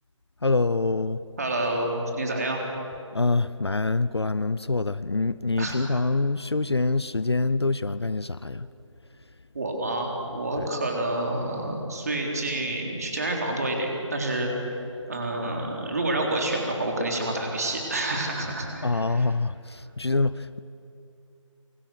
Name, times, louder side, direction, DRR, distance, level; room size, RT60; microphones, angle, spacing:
voice 1, 0.4-1.2 3.1-8.7 10.6-10.7 18.8-20.6, left 3 dB, 55° left, 0.6 m, -25 dB
voice 2, 1.4-2.6 5.6-6.0 9.5-14.8 15.1-19.3, right 1 dB, 30° right, 3.7 m, -28 dB
27.5 x 25.0 x 6.5 m
figure-of-eight pair, 165°, 17 cm